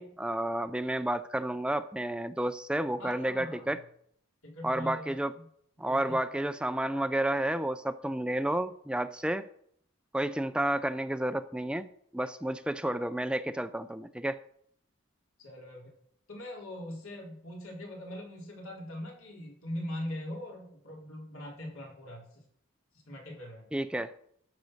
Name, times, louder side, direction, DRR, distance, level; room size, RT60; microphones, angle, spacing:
voice 1, 0.0-3.8 4.6-5.3 5.8-9.5 10.1-11.9 12.1-14.4 23.7-24.1, right 1 dB, 5° right, 11 dB, 0.3 m, -31 dB
voice 2, 3.0-3.8 4.4-5.5 5.8-6.2 15.4-15.9 16.3-22.4 23.1-23.7, left 1 dB, 85° left, -1 dB, 4.1 m, -41 dB
12.0 x 6.9 x 6.4 m, 0.67 s
head